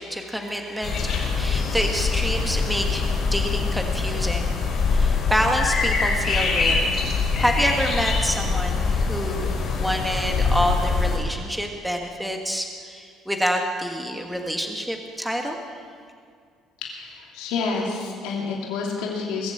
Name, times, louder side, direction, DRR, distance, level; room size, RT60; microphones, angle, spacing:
voice 1, 0.0-4.6 4.9-7.0 7.4-15.6, equal, 5° right, 3 dB, 1.5 m, -27 dB
sound 1, 0.8-11.2, left 4 dB, 55° left, 4.8 m, -23 dB
voice 2, 16.8-19.5, left 4 dB, 85° left, -2 dB, 2.9 m, -29 dB
21.5 x 7.3 x 7.8 m, 2.1 s
supercardioid pair, 90°, 0 cm